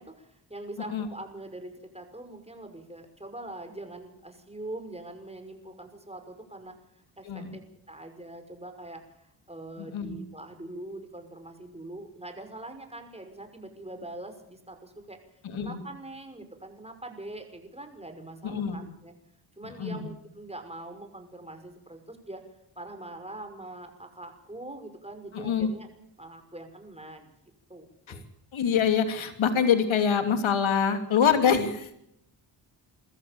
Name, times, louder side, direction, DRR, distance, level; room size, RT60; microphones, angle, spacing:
voice 1, 0.0-6.7 7.2-7.6 7.9-15.2 15.6-19.1 19.6-22.4 22.8-25.9 26.2-27.3 27.7-28.2, right 2 dB, 10° right, 6 dB, 5.8 m, -43 dB
voice 2, 7.3-7.6 9.8-10.2 15.4-15.8 18.4-18.9 19.8-20.1 25.3-25.7 28.5-31.9, left 7 dB, 70° left, 8 dB, 2.9 m, -25 dB
22.5 x 14.0 x 8.6 m, 0.78 s
supercardioid pair, 45°, 49 cm